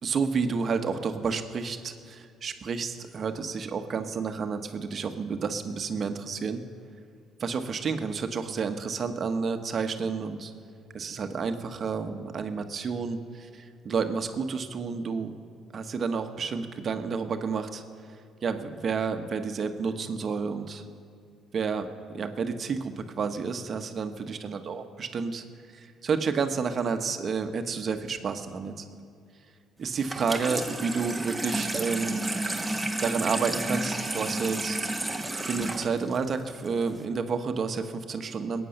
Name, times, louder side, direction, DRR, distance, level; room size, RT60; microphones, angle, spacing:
voice 1, 0.0-6.6 7.4-10.5 10.9-15.3 15.7-17.8 18.4-20.8 21.5-25.4 25.7-28.9 29.8-32.2 33.0-34.8 35.5-38.7, right 5 dB, 45° right, 7 dB, 1.3 m, -30 dB
Water tap faucet / Sink (filling or washing), 30.0-37.0, right 2 dB, 10° right, 1.5 m, -32 dB
21.0 x 9.3 x 6.6 m, 2.3 s
cardioid pair, 90°, 0 cm